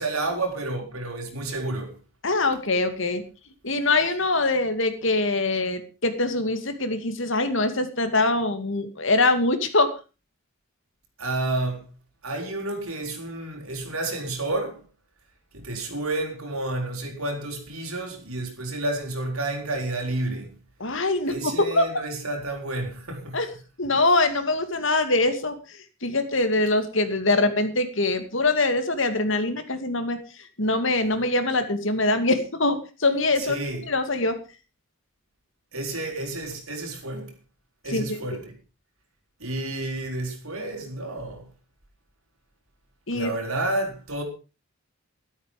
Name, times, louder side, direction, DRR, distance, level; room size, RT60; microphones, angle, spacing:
voice 1, 0.0-2.0 11.2-11.8 12.2-14.8 15.5-20.5 21.2-23.4 33.4-33.9 35.7-37.4 37.8-38.5 39.4-41.5 43.1-44.2, right 2 dB, 90° right, 5.3 m, -30 dB
voice 2, 2.2-3.2 3.6-9.9 20.8-21.9 23.3-23.5 23.8-30.2 30.6-33.6 33.9-34.3 37.9-38.2 43.1-43.3, left 2 dB, 60° left, 2.5 m, -23 dB
13.0 x 13.0 x 5.2 m
head